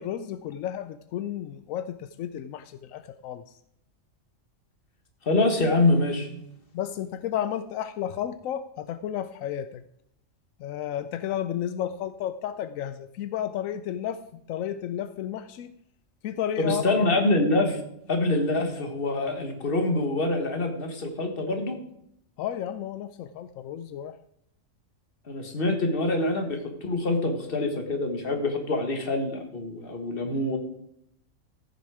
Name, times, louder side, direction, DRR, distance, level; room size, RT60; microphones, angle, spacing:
voice 1, 0.0-3.5 6.7-9.8 10.6-14.2 14.5-15.7 16.2-17.1 22.4-24.2, left 10 dB, 85° left, 12 dB, 1.0 m, -32 dB
voice 2, 5.3-6.3 16.6-17.8 18.1-21.8 25.3-30.6, left 2 dB, 45° left, 5 dB, 1.7 m, -25 dB
14.5 x 6.9 x 4.8 m, 0.74 s
omnidirectional pair, 1.4 m